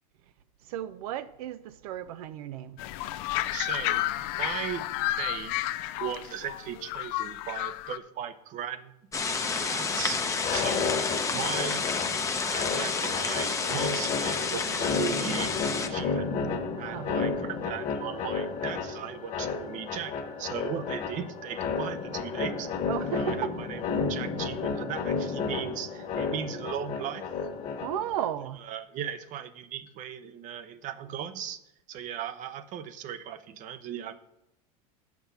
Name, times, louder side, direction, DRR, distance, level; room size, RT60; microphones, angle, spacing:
voice 1, 0.7-2.8 16.9-17.2 22.9-23.5 27.8-28.6, right 10 dB, 75° right, 0.5 m, -34 dB
sound 1, 2.8-8.0, left 15 dB, 55° left, 0.5 m, -31 dB
voice 2, 3.5-4.1 4.4-4.9 5.2-5.6 6.0-8.9 9.6-10.2 10.5-11.0 11.3-12.2 12.5-16.4 16.8-22.7 23.2-27.3 28.6-31.6 31.9-34.1, right 9 dB, 40° right, 0.7 m, -37 dB
sound 2, 9.1-15.9, left 4 dB, 15° left, 0.8 m, -30 dB
sound 3, 10.4-28.2, left 5 dB, 40° left, 1.5 m, -32 dB
7.1 x 5.9 x 7.0 m
supercardioid pair, 115°, 19 cm